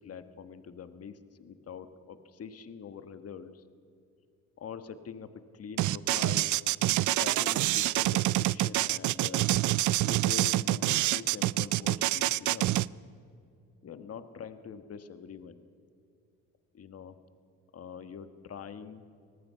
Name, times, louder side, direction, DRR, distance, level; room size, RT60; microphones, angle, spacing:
voice 1, 0.0-3.6 4.6-6.6 7.1-9.5 10.1-12.7 13.8-15.6 16.7-17.2 17.7-19.0, left 7 dB, 50° left, 10 dB, 1.4 m, -44 dB
sound 1, 5.8-12.9, right 16 dB, 75° right, 0.5 m, -26 dB
24.5 x 19.5 x 5.7 m, 2.4 s
cardioid pair, 90°, 30 cm